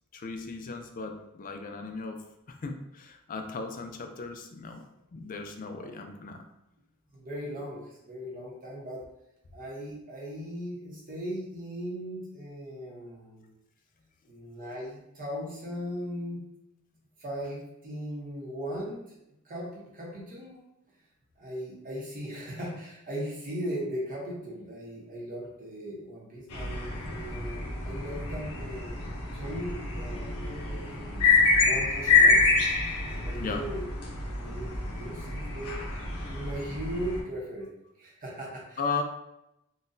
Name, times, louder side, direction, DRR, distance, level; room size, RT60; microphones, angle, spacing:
voice 1, 0.1-2.2 2.6-6.5 33.1-33.7 38.8-39.0, left 4 dB, 40° left, 5 dB, 0.4 m, -36 dB
voice 2, 7.1-9.0 9.5-13.5 14.3-16.4 17.2-19.0 19.4-20.6 21.4-29.0 29.3-32.4 33.0-33.9 34.4-35.8 36.3-37.7 38.0-38.8, equal, 40° right, -3 dB, 0.9 m, -38 dB
sound 1, 26.5-37.2, left 4 dB, 85° left, 0.8 m, -27 dB
3.8 x 2.2 x 2.6 m, 0.85 s
head